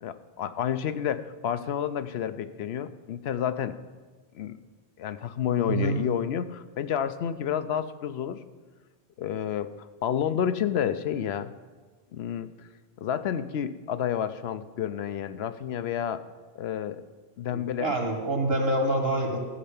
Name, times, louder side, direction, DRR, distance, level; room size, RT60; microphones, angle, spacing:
voice 1, 0.0-3.8 4.3-4.6 5.0-8.4 9.2-9.7 10.0-11.5 12.1-12.5 13.0-16.2 16.6-17.0 17.4-17.9, left 9 dB, 80° left, 12 dB, 0.9 m, -30 dB
voice 2, 17.5-19.4, right 1 dB, 65° right, 3 dB, 2.3 m, -26 dB
14.0 x 5.6 x 8.6 m, 1.3 s
omnidirectional pair, 1.1 m